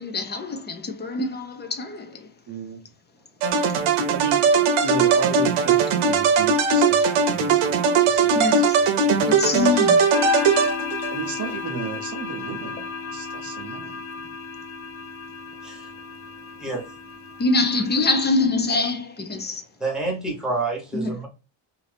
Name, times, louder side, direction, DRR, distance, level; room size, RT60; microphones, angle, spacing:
voice 1, 0.0-2.3 8.3-8.8 9.3-10.1 17.4-19.6 20.9-21.1, left 3 dB, 25° left, 0.4 m, -24 dB
voice 2, 2.5-2.8 4.1-4.4 4.8-9.3 11.1-14.0, right 7 dB, 40° right, 0.6 m, -34 dB
sound 1, 3.4-11.1, right 5 dB, 85° right, 0.7 m, -19 dB
sound 2, 10.1-18.3, left 5 dB, 80° left, 0.7 m, -34 dB
voice 3, 16.6-16.9 19.4-21.3, right 3 dB, ahead, 1.0 m, -29 dB
2.6 x 2.5 x 3.3 m
cardioid pair, 135°, 49 cm